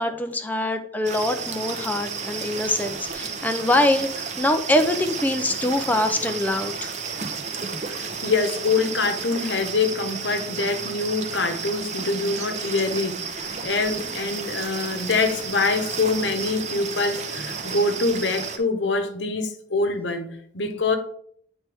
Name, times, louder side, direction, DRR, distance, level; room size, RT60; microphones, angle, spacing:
voice 1, 0.0-7.0, left 1 dB, 10° left, 0.4 m, -24 dB
sound 1, 1.0-18.6, right 5 dB, 40° right, 0.7 m, -32 dB
voice 2, 7.9-21.0, left 3 dB, 75° left, 0.9 m, -25 dB
9.2 x 4.4 x 3.4 m
head